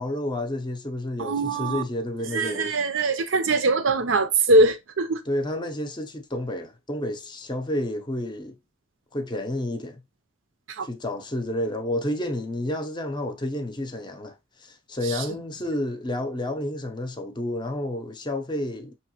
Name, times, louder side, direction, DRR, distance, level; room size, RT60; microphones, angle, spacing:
voice 1, 0.0-2.7 5.3-8.6 9.1-10.0 10.8-19.0, left 1 dB, 20° left, 0.6 m, -30 dB
voice 2, 1.2-1.8 2.3-5.2 10.7-10.9 15.0-15.2, right 2 dB, 75° right, 0.7 m, -22 dB
5.5 x 2.9 x 2.9 m
head